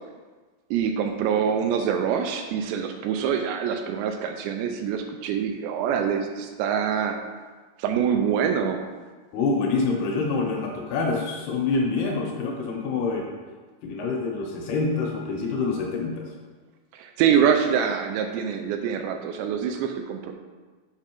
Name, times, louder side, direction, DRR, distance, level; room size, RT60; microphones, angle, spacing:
voice 1, 0.7-7.2 7.8-8.8 16.9-20.3, right 7 dB, 80° right, 5 dB, 2.6 m, -25 dB
voice 2, 9.3-13.2 13.8-16.3, left 4 dB, 75° left, 0 dB, 2.5 m, -26 dB
7.8 x 5.8 x 4.4 m, 1.4 s
omnidirectional pair, 5.2 m